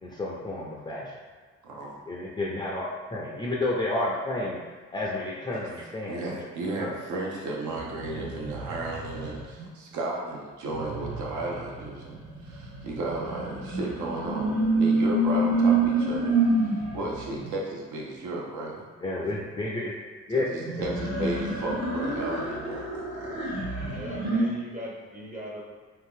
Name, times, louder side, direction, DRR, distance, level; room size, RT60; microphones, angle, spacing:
voice 1, 0.0-1.0 2.1-2.8 3.1-4.6 4.9-6.4 6.8-6.9 8.2-8.3 19.0-19.9 20.3-20.4, left 2 dB, 15° left, -4 dB, 0.5 m, -30 dB
voice 2, 1.6-2.0 5.8-16.3 16.9-18.8 20.3-22.9, right 2 dB, 80° right, -2 dB, 0.8 m, -34 dB
sound 1, 7.7-9.6 10.7-17.5 20.6-24.4, right 2 dB, 55° right, 1.5 m, -28 dB
voice 3, 23.8-25.6, equal, 25° right, -3 dB, 0.7 m, -39 dB
2.8 x 2.4 x 3.6 m, 1.5 s
cardioid pair, 90°, 30 cm